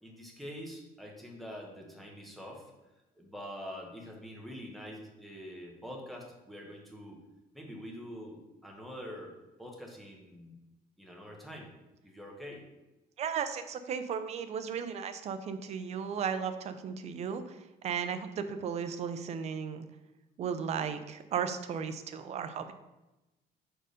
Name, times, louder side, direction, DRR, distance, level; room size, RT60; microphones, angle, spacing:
voice 1, 0.0-2.7 3.2-7.2 7.5-9.3 9.6-10.6 11.0-11.7 12.0-12.6, equal, ahead, -1 dB, 1.0 m, -45 dB
voice 2, 13.2-17.6 17.8-19.9 20.4-22.7, right 7 dB, 40° right, 9 dB, 0.5 m, -35 dB
4.9 x 4.5 x 5.1 m, 1.0 s
cardioid pair, 175°, 17 cm